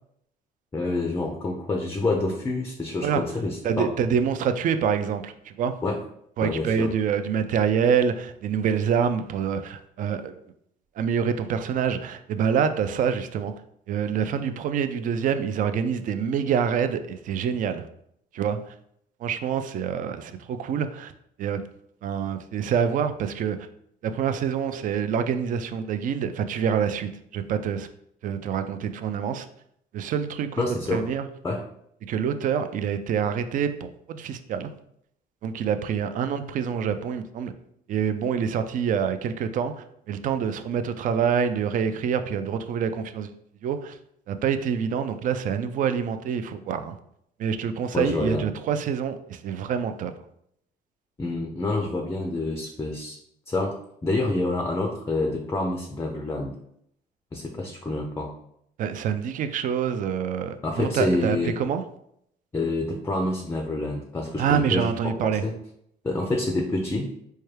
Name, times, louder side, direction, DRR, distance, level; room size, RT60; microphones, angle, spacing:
voice 1, 0.7-3.9 5.8-6.0 6.4-6.9 30.6-31.1 31.4-31.6 47.9-48.4 51.2-53.2 53.5-53.7 54.0-56.5 57.3-58.3 60.6-61.6 62.5-65.5 66.0-67.1, left 2 dB, 15° left, 3 dB, 0.4 m, -27 dB
voice 2, 3.6-5.7 6.4-10.3 11.0-13.5 13.9-17.8 18.3-18.6 19.2-21.1 21.4-21.6 22.0-23.6 24.0-27.9 28.2-29.5 29.9-30.6 30.9-31.3 32.1-34.7 35.4-37.5 37.9-43.3 43.6-44.0 44.3-46.9 47.4-50.1 58.8-61.8 64.4-65.4, right 7 dB, 50° right, 9 dB, 0.4 m, -26 dB
4.4 x 2.2 x 3.2 m, 0.72 s
cardioid pair, 110°, 17 cm